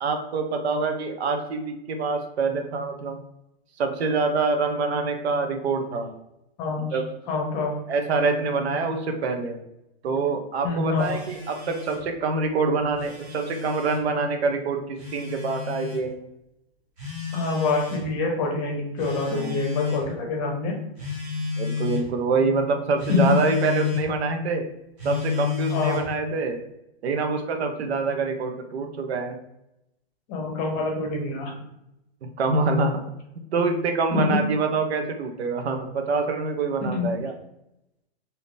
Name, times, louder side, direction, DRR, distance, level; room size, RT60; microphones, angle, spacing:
voice 1, 0.0-3.2 3.8-6.1 6.9-7.0 7.9-9.6 10.0-16.3 19.3-19.6 21.6-24.6 25.0-26.6 27.0-29.4 32.4-33.0 33.5-37.3, right 4 dB, 80° right, 5 dB, 0.7 m, -25 dB
voice 2, 6.6-7.0 7.3-7.8 10.6-11.2 17.3-20.8 23.1-23.4 25.7-26.0 30.3-31.5 34.1-34.4 36.8-37.1, left 3 dB, 25° left, 1 dB, 0.7 m, -26 dB
Telephone, 11.0-12.1 12.8-14.0 15.0-16.0 17.0-18.1 19.0-20.1 21.0-22.1 23.0-24.1 25.0-26.1, left 6 dB, 25° right, 0.9 m, -31 dB
3.5 x 2.7 x 2.5 m, 0.84 s
hypercardioid pair, 155°, 31 cm